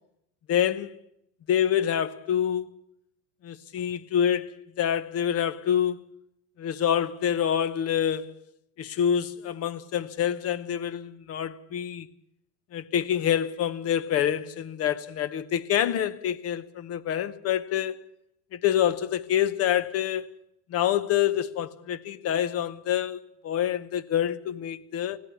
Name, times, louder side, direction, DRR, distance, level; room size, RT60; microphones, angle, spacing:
voice 1, 0.5-0.9 1.5-2.8 3.4-6.0 6.6-8.3 8.8-12.1 12.7-18.0 18.5-20.3 20.7-25.2, left 10 dB, 35° left, 1.0 m, -27 dB
20.0 x 16.5 x 8.2 m
supercardioid pair, 135°, 42 cm